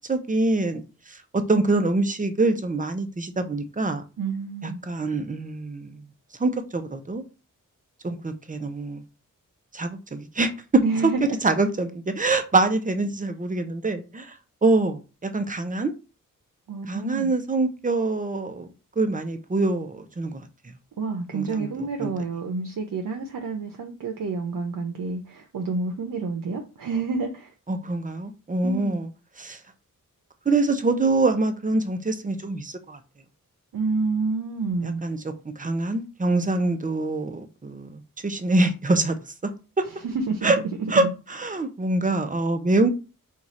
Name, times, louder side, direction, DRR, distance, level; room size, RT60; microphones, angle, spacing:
voice 1, 0.1-0.8 1.1-4.0 4.6-6.0 6.4-7.2 8.0-9.0 9.7-11.1 11.4-14.3 14.6-15.9 16.9-18.7 19.0-20.4 21.3-21.7 22.0-22.1 27.7-29.1 29.4-29.6 30.5-33.0 34.8-39.2 39.4-39.5 39.8-39.9 40.4-40.6 40.9-41.0 41.3-42.9, right 2 dB, 25° right, 0.7 m, -24 dB
voice 2, 4.2-4.8 10.8-11.3 16.7-17.3 21.0-27.5 28.6-29.0 33.7-35.0 40.3-40.5 40.9-41.1, right 4 dB, 75° right, 0.8 m, -29 dB
4.7 x 2.4 x 4.1 m
wide cardioid pair, 85°, 34 cm